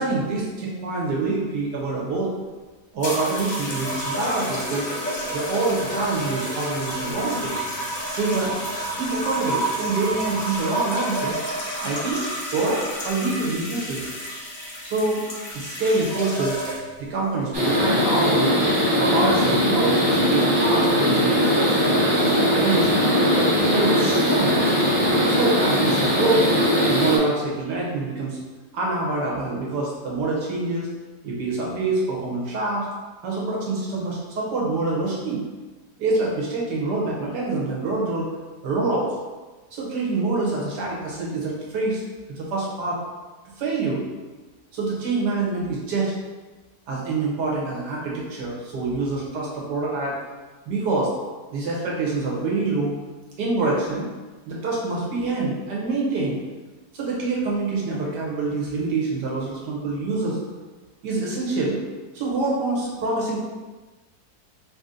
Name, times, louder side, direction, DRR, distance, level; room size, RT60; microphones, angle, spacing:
voice 1, 0.0-2.3 2.9-4.9 5.3-7.5 8.2-8.5 8.9-11.4 11.8-12.2 12.5-14.1 14.8-15.2 15.5-16.6 17.0-18.5 18.9-23.0 23.5-24.5 25.3-26.5 26.9-28.4 28.7-30.9 31.2-32.9 33.2-35.4 36.0-38.3 38.6-39.1 39.7-42.0 42.4-43.0 43.6-44.0 44.7-46.1 46.9-50.1 50.7-51.1 51.5-52.9 53.4-54.1 54.5-56.4 56.9-60.4 61.0-61.8 62.1-63.4, right 3 dB, 90° right, -4 dB, 1.6 m, -26 dB
sound 1, 3.0-17.0 17.9-18.2, right 1 dB, 40° left, 0.6 m, -30 dB
sound 2, 17.5-27.2, equal, 30° right, 0.5 m, -20 dB
3.4 x 2.8 x 3.7 m, 1.3 s
omnidirectional pair, 1.8 m